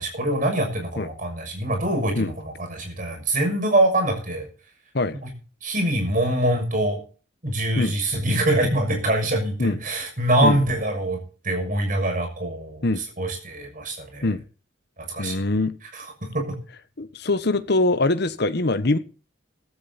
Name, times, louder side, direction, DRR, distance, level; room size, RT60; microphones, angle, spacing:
voice 1, 0.0-2.3 2.6-4.5 5.2-5.3 5.6-7.0 7.4-12.9 13.2-14.3 15.1-15.4 16.3-16.6, right 1 dB, 45° right, 6.4 m, -24 dB
voice 2, 15.2-15.7 17.0-19.0, left 2 dB, 55° left, 1.1 m, -23 dB
15.0 x 14.0 x 4.2 m
head